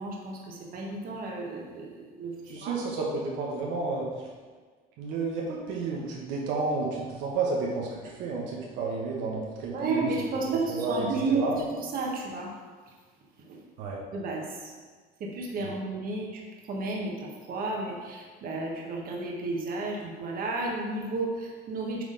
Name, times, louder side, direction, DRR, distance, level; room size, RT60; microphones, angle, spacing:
voice 1, 0.0-2.3 2.6-2.7 9.7-11.6 11.9-12.5 13.5-13.6 14.1-14.7 15.2-16.4 16.7-22.0, right 3 dB, 50° right, -2 dB, 1.3 m, -32 dB
voice 2, 2.4-4.1 5.0-10.1 10.5-11.6 13.8-14.0 15.6-15.7, right 3 dB, 80° right, -2 dB, 1.1 m, -31 dB
7.8 x 3.7 x 3.9 m, 1.5 s
cardioid pair, 115°, 19 cm